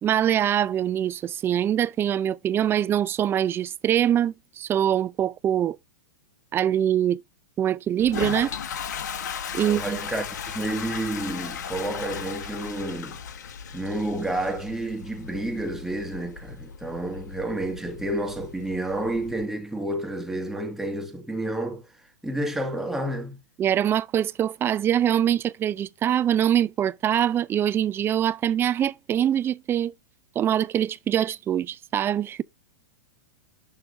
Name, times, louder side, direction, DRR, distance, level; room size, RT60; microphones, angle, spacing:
voice 1, 0.0-5.8 6.5-7.2 7.6-8.5 9.5-10.0 23.6-29.9 30.4-32.4, right 10 dB, 25° right, 0.5 m, -23 dB
Toilet flush, 8.0-19.4, left 7 dB, 70° left, 1.5 m, -36 dB
voice 2, 9.6-10.3 10.5-13.2 13.7-21.9 22.2-23.4, right 1 dB, 5° right, 2.0 m, -30 dB
11.5 x 3.8 x 3.3 m
hypercardioid pair, 110°, 10 cm